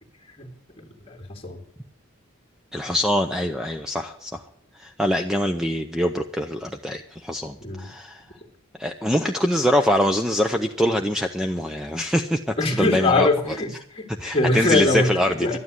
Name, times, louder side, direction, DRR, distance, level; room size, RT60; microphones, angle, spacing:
voice 1, 0.8-1.6 7.6-7.9 12.6-15.6, left 2 dB, 25° left, 3 dB, 2.0 m, -23 dB
voice 2, 2.7-4.4 4.8-8.2 8.8-13.3 14.2-15.5, equal, 5° right, 6 dB, 0.5 m, -24 dB
12.5 x 9.6 x 9.5 m, 0.69 s
head